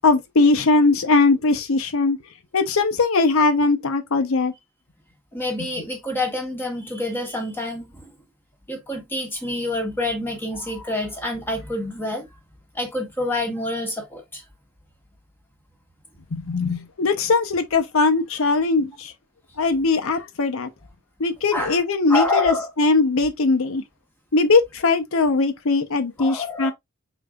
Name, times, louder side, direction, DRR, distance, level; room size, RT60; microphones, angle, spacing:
voice 1, 0.0-2.2 2.5-4.5 16.3-19.1 19.6-20.7 21.2-23.8 24.3-26.7, left 3 dB, 70° left, 0.7 m, -20 dB
voice 2, 5.3-8.0 8.7-12.3 12.7-14.4 21.5-21.8 22.1-22.7 26.2-26.7, left 2 dB, 10° left, 1.1 m, -27 dB
5.1 x 4.0 x 2.3 m
head